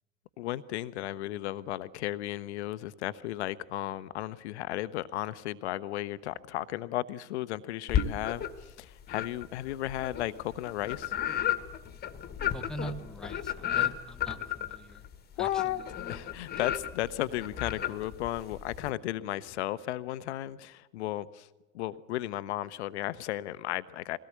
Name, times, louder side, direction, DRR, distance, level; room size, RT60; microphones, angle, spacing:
voice 1, 0.4-11.1 15.4-15.8 16.1-21.5 21.7-24.2, left 14 dB, 55° left, 15 dB, 0.8 m, -34 dB
sound 1, 7.9-8.7 9.1-18.9, left 10 dB, 25° left, 1.4 m, -33 dB
voice 2, 12.5-15.0 15.4-15.8 16.5-16.6, equal, ahead, 7 dB, 0.8 m, -43 dB
21.5 x 17.5 x 8.2 m, 1.1 s
figure-of-eight pair, 85°, 40 cm